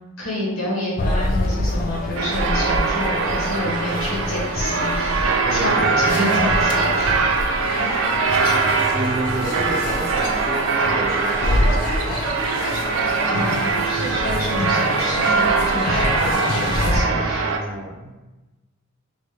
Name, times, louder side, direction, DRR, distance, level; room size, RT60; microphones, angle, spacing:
voice 1, 0.2-7.4 13.2-17.5, left 1 dB, 75° left, -6 dB, 1.4 m, -28 dB
sound 1, 1.0-17.0, left 1 dB, 40° left, 0.3 m, -26 dB
sound 2, 2.1-17.6, right 4 dB, 70° right, 0.4 m, -22 dB
voice 2, 5.4-5.8 7.1-7.2 7.8-8.1 8.9-11.9 16.8-18.1, right 1 dB, 30° right, -4 dB, 0.8 m, -30 dB
3.2 x 2.5 x 3.1 m, 1.1 s
head